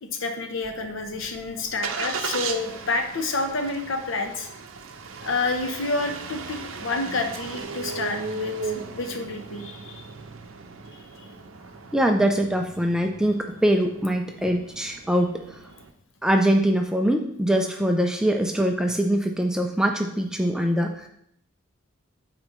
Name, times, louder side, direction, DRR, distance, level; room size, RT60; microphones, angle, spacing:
voice 1, 0.0-4.5 5.2-10.1 11.2-11.3, left 3 dB, 65° left, 5 dB, 0.8 m, -29 dB
Engine starting, 0.6-15.9, right 4 dB, 70° right, 0.6 m, -37 dB
voice 2, 11.9-15.6 16.2-21.1, right 1 dB, 5° right, 3 dB, 0.3 m, -23 dB
8.6 x 4.3 x 3.1 m, 0.72 s
head